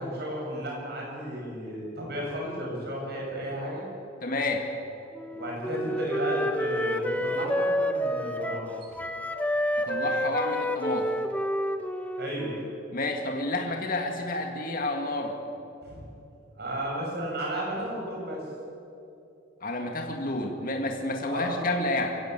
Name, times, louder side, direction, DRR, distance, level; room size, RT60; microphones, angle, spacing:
voice 1, 0.0-3.8 5.4-8.9 12.2-12.6 15.8-16.0 16.6-18.4 21.3-21.6, equal, 55° right, -2 dB, 7.8 m, -33 dB
voice 2, 4.2-4.7 9.9-11.1 12.9-15.3 19.6-22.2, left 2 dB, 50° left, 3 dB, 2.1 m, -29 dB
Wind instrument woodwind instrument, 5.1-8.7 9.0-12.8, equal, 10° left, 1.0 m, -29 dB
23.5 x 16.5 x 8.4 m, 2.7 s
head